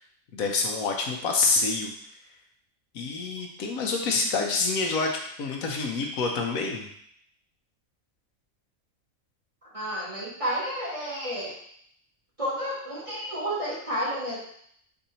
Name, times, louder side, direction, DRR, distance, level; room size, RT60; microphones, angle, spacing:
voice 1, 0.3-1.9 2.9-5.1 5.4-6.9, left 4 dB, 85° left, 1 dB, 1.2 m, -27 dB
voice 2, 9.7-11.5 12.4-14.4, equal, 25° right, -8 dB, 1.4 m, -31 dB
4.6 x 2.7 x 4.3 m, 0.65 s
omnidirectional pair, 1.4 m